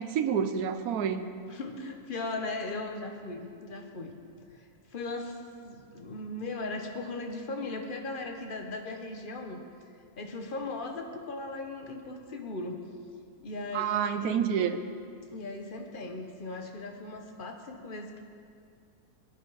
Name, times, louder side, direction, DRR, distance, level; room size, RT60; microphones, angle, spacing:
voice 1, 0.0-1.3 13.7-14.8, right 8 dB, 75° right, 9 dB, 1.0 m, -28 dB
voice 2, 1.5-4.1 4.5-5.4 5.6-9.7 10.2-12.8 13.4-14.6 15.3-18.2, left 2 dB, 40° left, 4 dB, 0.9 m, -38 dB
16.0 x 9.9 x 4.0 m, 2.3 s
omnidirectional pair, 1.7 m